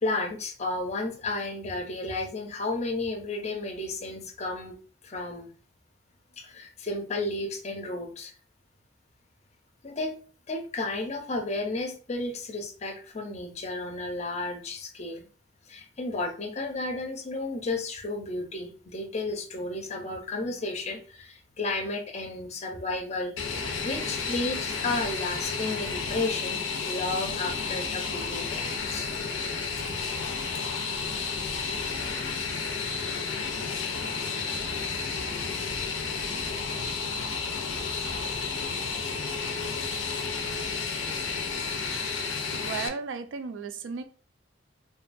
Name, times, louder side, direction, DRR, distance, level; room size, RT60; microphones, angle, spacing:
voice 1, 0.0-4.7 5.0-5.5 6.4-8.3 9.8-10.2 10.5-15.2 15.7-23.3 23.8-26.6 26.9-29.1, left 2 dB, 35° left, 4 dB, 0.5 m, -32 dB
Fixed-wing aircraft airplane, 23.4-42.9, left 5 dB, 85° left, 0.4 m, -32 dB
voice 2, 42.5-44.0, right 5 dB, 80° right, 9 dB, 0.3 m, -35 dB
2.6 x 2.2 x 2.5 m, 0.39 s
head